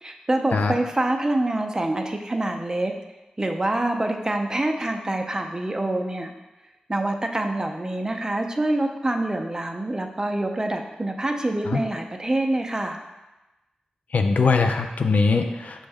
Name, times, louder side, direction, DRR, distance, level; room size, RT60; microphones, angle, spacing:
voice 1, 0.0-2.9 3.4-6.3 6.9-13.0, right 1 dB, 25° right, 4 dB, 0.5 m, -26 dB
voice 2, 14.1-15.9, left 4 dB, 65° left, 5 dB, 0.3 m, -21 dB
6.1 x 2.2 x 3.4 m, 1.0 s
cardioid pair, 50°, 3 cm